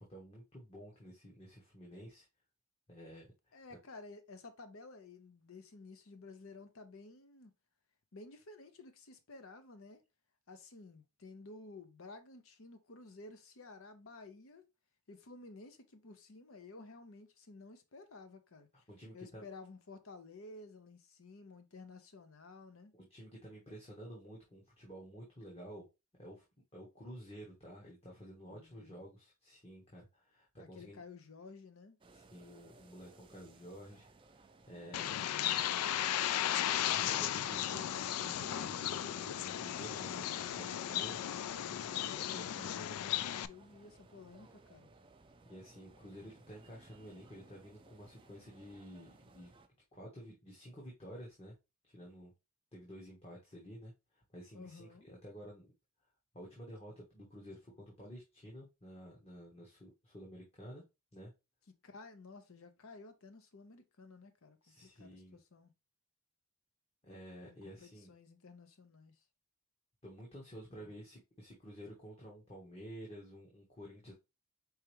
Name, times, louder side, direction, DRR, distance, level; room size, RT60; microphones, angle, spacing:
voice 1, 0.0-2.3 2.9-3.6 18.9-19.5 23.0-25.8 26.2-26.4 26.7-31.0 32.1-34.0 34.7-35.3 36.6-41.2 41.6-42.8 45.5-49.5 49.9-51.6 51.9-52.3 52.7-55.7 56.3-60.8 61.1-61.3 64.6-65.4 67.0-68.1 70.0-74.1, equal, 25° left, 1.1 m, -51 dB
voice 2, 3.5-7.5 8.1-10.0 10.5-14.6 15.1-18.7 19.1-22.9 28.5-29.1 30.6-32.0 34.8-36.0 41.9-44.9 54.5-55.1 61.8-65.7 67.5-69.1 70.7-70.9, left 3 dB, 70° left, 0.8 m, -53 dB
sound 1, 32.0-49.7, right 2 dB, 20° right, 0.4 m, -61 dB
Bird, 34.9-43.5, left 11 dB, 85° left, 0.3 m, -35 dB
4.8 x 3.4 x 3.0 m
head